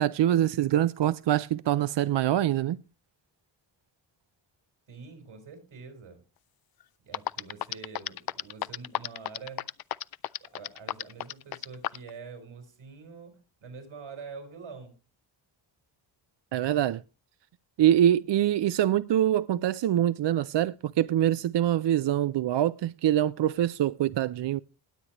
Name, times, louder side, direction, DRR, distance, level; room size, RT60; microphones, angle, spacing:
voice 1, 0.0-2.8 16.5-17.0 17.8-24.6, right 11 dB, 60° right, 0.5 m, -24 dB
voice 2, 4.9-6.2 7.0-9.7 10.4-15.0, right 5 dB, 85° right, 4.3 m, -45 dB
sound 1, 6.8-6.9 7.1-12.1, left 12 dB, 50° left, 0.4 m, -32 dB
19.5 x 8.0 x 3.0 m
cardioid pair, 85°, 48 cm